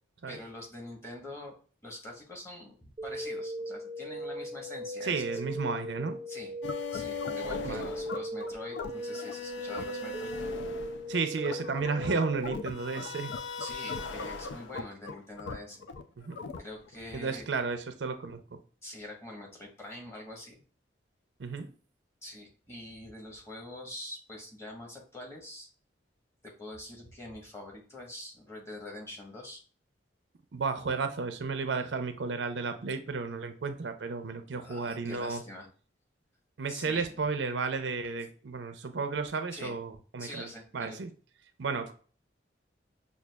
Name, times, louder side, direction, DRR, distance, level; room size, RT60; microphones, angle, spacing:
voice 1, 0.3-1.6 1.8-5.6 6.3-6.5 6.9-10.3 13.6-15.8 16.6-17.5 18.8-20.6 22.2-25.7 26.4-29.6 34.6-35.7 36.7-37.2 39.5-39.8 40.2-41.0, left 1 dB, 15° left, -1 dB, 1.0 m, -44 dB
sound 1, 3.0-12.5, right 1 dB, 25° right, 0.5 m, -38 dB
voice 2, 5.0-6.2 7.6-7.9 11.1-13.3 16.2-16.4 17.1-18.4 21.4-21.7 30.5-35.4 36.6-40.5 40.7-41.1 41.6-41.9, right 4 dB, 80° right, 8 dB, 0.5 m, -33 dB
sound 2, 6.6-17.0, left 4 dB, 75° left, 0.4 m, -39 dB
6.1 x 2.4 x 2.3 m, 0.40 s
head